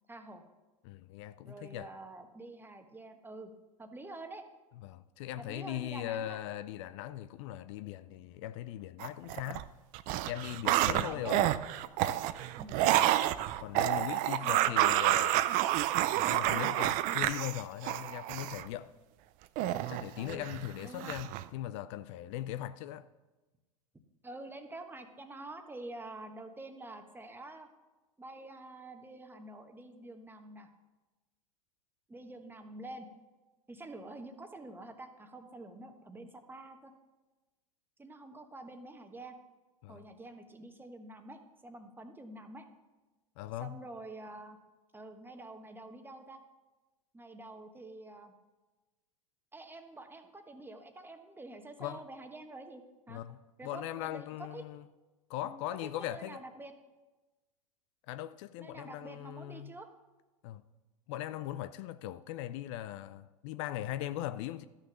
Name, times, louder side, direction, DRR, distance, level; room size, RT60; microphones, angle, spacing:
voice 1, 0.1-0.4 1.4-3.5 3.8-4.5 5.4-6.4 10.9-11.5 12.6-12.8 14.3-14.8 20.1-20.5 20.8-21.1 24.2-27.7 28.2-30.7 32.1-33.1 33.7-36.9 38.0-39.4 39.9-42.7 43.6-44.6 44.9-46.4 47.1-48.3 49.5-53.2 53.6-54.6 55.4-56.7 58.6-59.9, right 2 dB, 10° right, 1.2 m, -47 dB
voice 2, 0.8-1.9 4.8-9.7 10.3-11.5 12.0-12.2 13.6-15.5 16.1-18.9 19.9-23.1 39.8-40.1 43.4-43.8 51.8-52.0 53.1-54.8 55.3-56.4 58.1-59.7 60.4-60.6 61.1-64.7, left 13 dB, 55° left, 0.5 m, -40 dB
sound 1, 9.0-9.6 9.9-18.6 19.6-20.7 21.0-21.4, right 14 dB, 50° right, 0.5 m, -29 dB
13.0 x 6.5 x 6.2 m
hypercardioid pair, 90°, 18 cm